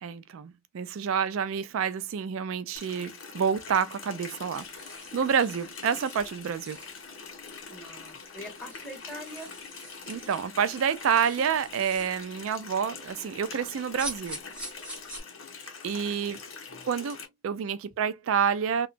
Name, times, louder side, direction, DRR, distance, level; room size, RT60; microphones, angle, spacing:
voice 1, 0.0-4.6 5.1-6.8 10.1-14.4 15.8-16.4 16.8-17.2 17.4-18.9, right 7 dB, 75° right, 0.4 m, -28 dB
Water tap faucet, 2.8-17.3, left 5 dB, 70° left, 0.9 m, -44 dB
sound 1, 4.5-7.3 7.9-8.0 8.2-12.2 14.0-15.2, right 1 dB, 5° right, 1.2 m, -45 dB
voice 2, 7.7-9.5 16.7-16.9, equal, 10° left, 1.4 m, -43 dB
2.8 x 2.3 x 2.5 m
head